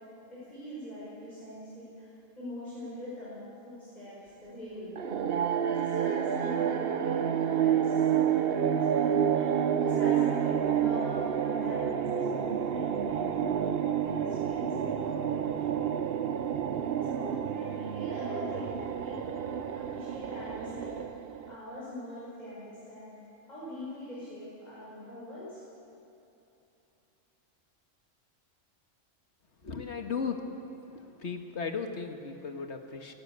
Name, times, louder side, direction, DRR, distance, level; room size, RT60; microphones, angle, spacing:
voice 1, 0.3-5.1 5.6-9.4 9.8-15.8 16.9-20.9 21.5-23.2 23.5-25.6, left 1 dB, 35° left, -9 dB, 5.8 m, -43 dB
sound 1, 5.0-21.5, right 8 dB, 55° right, 0.9 m, -29 dB
voice 2, 29.6-30.4 31.2-33.1, left 5 dB, 60° left, 5 dB, 1.8 m, -35 dB
18.5 x 17.5 x 8.1 m, 3.0 s
omnidirectional pair, 1.3 m